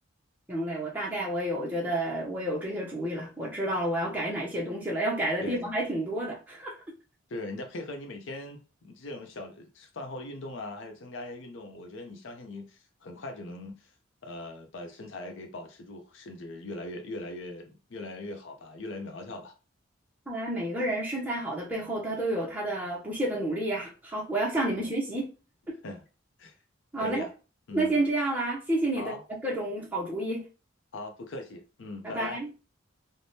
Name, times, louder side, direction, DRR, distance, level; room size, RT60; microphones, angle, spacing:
voice 1, 0.5-6.7 20.3-25.2 26.9-27.2 27.7-29.1 29.4-30.4 32.0-32.5, right 1 dB, 10° right, 0.6 m, -30 dB
voice 2, 5.4-5.7 7.3-13.9 14.2-19.6 24.8-24.9 25.8-26.0 26.4-26.6 27.0-27.3 27.7-28.0 29.0-29.2 30.9-32.5, left 2 dB, 70° left, 0.5 m, -40 dB
3.3 x 2.1 x 2.7 m
head